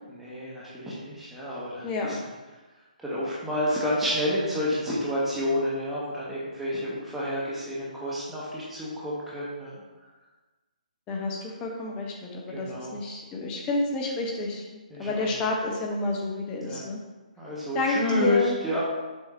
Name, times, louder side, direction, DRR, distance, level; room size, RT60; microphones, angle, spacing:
voice 1, 0.1-2.1 3.0-9.7 12.5-12.9 14.9-15.3 16.6-16.8 17.4-18.8, left 1 dB, 5° right, -8 dB, 1.2 m, -29 dB
voice 2, 1.8-2.2 11.1-17.0 17.7-18.6, left 2 dB, 15° left, -1 dB, 0.8 m, -30 dB
7.1 x 5.6 x 2.6 m, 1.2 s
figure-of-eight pair, 135°, 5 cm